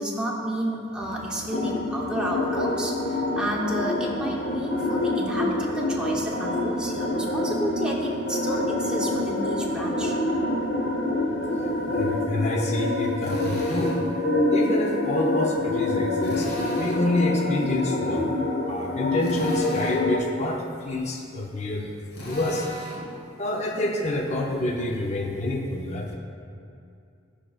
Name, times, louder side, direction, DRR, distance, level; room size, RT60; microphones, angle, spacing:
voice 1, 0.0-10.2, equal, 5° right, -3 dB, 0.8 m, -31 dB
sound 1, 1.0-12.3, right 2 dB, 65° right, 0.4 m, -41 dB
sound 2, 1.5-20.2, left 2 dB, 75° left, 0.9 m, -26 dB
voice 2, 11.9-14.0 14.5-18.3 18.6-22.7 23.4-26.2, left 1 dB, 35° left, 0 dB, 0.6 m, -28 dB
Drill, 13.2-14.1 16.2-17.1 19.2-20.1 22.1-23.1, left 1 dB, 55° left, 1.2 m, -36 dB
13.5 x 5.0 x 2.4 m, 2.5 s
head